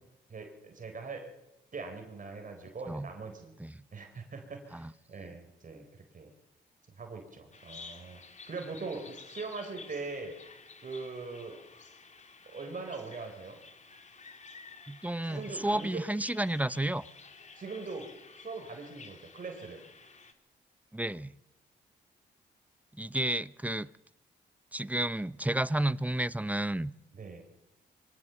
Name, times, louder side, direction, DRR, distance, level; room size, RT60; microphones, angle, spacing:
voice 1, 0.3-1.3 1.7-3.5 3.9-5.9 6.1-6.3 7.0-8.2 8.5-10.4 10.8-11.6 12.5-13.6 15.2-16.0 17.6-19.8 27.1-27.4, right 4 dB, 45° right, 4 dB, 4.0 m, -41 dB
Bird vocalization bird call bird song, 7.5-20.3, left 4 dB, 40° left, 2.6 m, -52 dB
voice 2, 14.9-17.0 20.9-21.3 23.0-23.9 24.7-26.9, right 1 dB, 10° right, 18 dB, 0.7 m, -31 dB
24.0 x 16.5 x 7.0 m, 0.94 s
cardioid pair, 65°, 18 cm